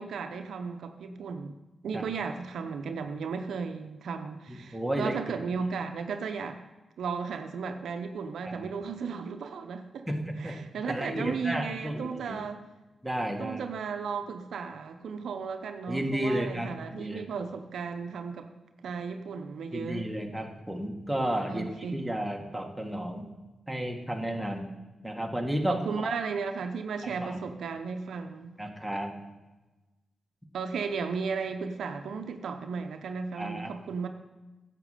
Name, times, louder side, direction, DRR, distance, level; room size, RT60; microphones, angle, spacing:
voice 1, 0.0-1.6 1.8-6.6 7.0-10.1 10.4-12.6 13.4-18.5 18.8-20.1 21.5-22.2 25.7-28.5 30.5-34.1, right 5 dB, 80° right, 6 dB, 0.7 m, -35 dB
voice 2, 4.5-5.2 8.5-8.7 10.1-10.6 10.9-12.4 13.0-13.6 15.9-17.2 19.7-23.3 23.7-24.7 25.0-26.1 27.0-27.4 28.6-29.2 33.4-33.7, right 1 dB, 5° right, 2 dB, 1.7 m, -32 dB
10.5 x 7.5 x 5.0 m, 1.1 s
supercardioid pair, 50°, 0 cm